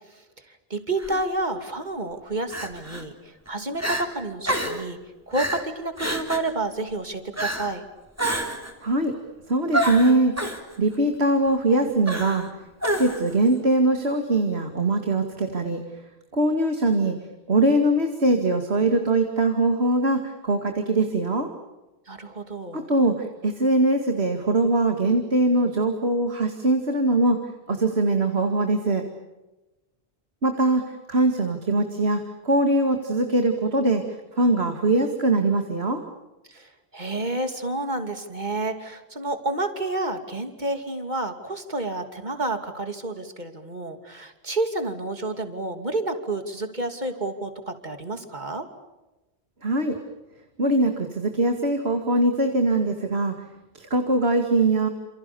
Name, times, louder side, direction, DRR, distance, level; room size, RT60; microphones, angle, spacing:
voice 1, 0.1-5.0 5.3-7.8 22.1-22.9 36.5-48.7, right 2 dB, 45° right, 8 dB, 3.0 m, -30 dB
Crying sobbing, 1.0-1.2 2.5-3.0 3.5-3.6 3.8-4.1 4.5-4.8 5.3-5.6 6.0-6.5 7.4-7.7 8.2-8.7 9.7-10.6 12.1-12.5 12.8-13.3, right 1 dB, 15° right, 3.4 m, -27 dB
voice 2, 8.8-9.1 9.5-10.3 10.8-12.5 12.8-15.8 16.3-17.2 17.5-21.5 22.7-27.4 27.7-29.0 30.4-34.0 34.4-36.0 49.6-50.0 50.6-53.3 53.7-54.9, right 2 dB, 85° right, 5 dB, 2.5 m, -22 dB
29.0 x 28.0 x 7.0 m, 1.0 s
omnidirectional pair, 1.0 m